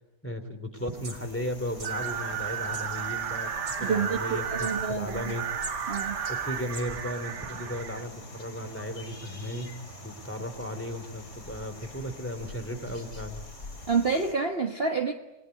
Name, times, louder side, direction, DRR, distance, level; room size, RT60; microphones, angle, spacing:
voice 1, 0.2-3.5 3.8-5.4 6.3-9.7 10.0-13.4, equal, 5° left, 8 dB, 3.0 m, -35 dB
sound 1, 0.7-14.3, left 1 dB, 40° left, 4.2 m, -45 dB
sound 2, 0.9-6.8, right 2 dB, 60° right, 4.3 m, -46 dB
sound 3, 1.8-8.0, right 7 dB, 75° right, 1.9 m, -33 dB
voice 2, 3.8-5.3 5.9-6.2 13.9-15.1, right 5 dB, 35° right, 4 dB, 1.5 m, -28 dB
29.0 x 21.0 x 9.5 m, 1.0 s
omnidirectional pair, 1.8 m